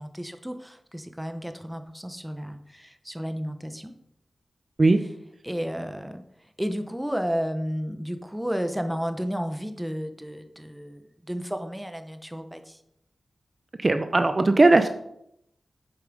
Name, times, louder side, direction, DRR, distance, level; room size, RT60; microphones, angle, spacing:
voice 1, 0.0-3.9 5.4-6.2 6.6-12.8, equal, 5° right, 7 dB, 1.0 m, -32 dB
voice 2, 13.8-14.9, right 2 dB, 40° right, 8 dB, 0.6 m, -18 dB
8.2 x 7.1 x 5.3 m, 0.76 s
wide cardioid pair, 80°, 0 cm